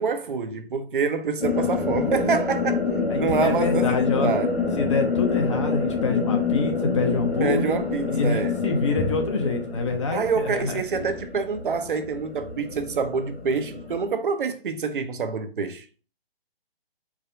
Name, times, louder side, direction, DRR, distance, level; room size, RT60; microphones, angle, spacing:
voice 1, 0.0-2.8 3.2-4.5 7.4-8.6 10.1-15.9, right 5 dB, 55° right, 0.7 m, -26 dB
sound 1, 1.4-14.1, left 5 dB, 85° left, 1.2 m, -27 dB
voice 2, 3.1-4.3 4.8-7.8 8.1-10.8, left 3 dB, 30° left, 0.6 m, -26 dB
4.8 x 2.2 x 4.8 m
figure-of-eight pair, 145°, 31 cm